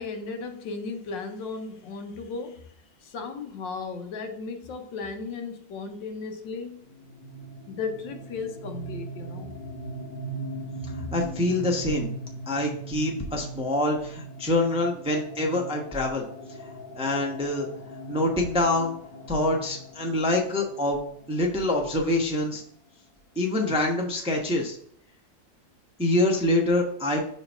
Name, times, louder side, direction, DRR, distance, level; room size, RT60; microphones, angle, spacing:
voice 1, 0.0-2.6 3.0-6.8 7.7-9.5, left 4 dB, 75° left, 1.5 m, -35 dB
sound 1, 6.8-22.4, right 2 dB, 60° left, 3.2 m, -40 dB
voice 2, 11.1-12.1 12.5-16.2 17.0-17.7 18.1-18.9 19.3-21.0 21.3-22.6 23.4-24.8 26.0-27.2, left 1 dB, 5° right, 0.6 m, -25 dB
6.8 x 3.1 x 5.4 m
omnidirectional pair, 2.0 m